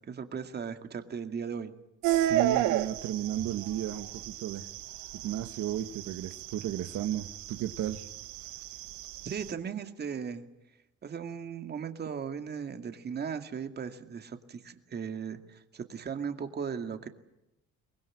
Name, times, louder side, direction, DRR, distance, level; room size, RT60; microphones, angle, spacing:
voice 1, 0.1-1.7 9.2-10.4 11.0-17.1, right 6 dB, 35° right, 7 dB, 2.3 m, -37 dB
voice 2, 2.0-4.7 5.1-8.1, right 12 dB, 65° right, 8 dB, 1.5 m, -34 dB
sound 1, 2.0-9.5, right 12 dB, 85° right, 1.6 m, -33 dB
24.5 x 20.5 x 9.9 m, 0.89 s
cardioid pair, 115°, 29 cm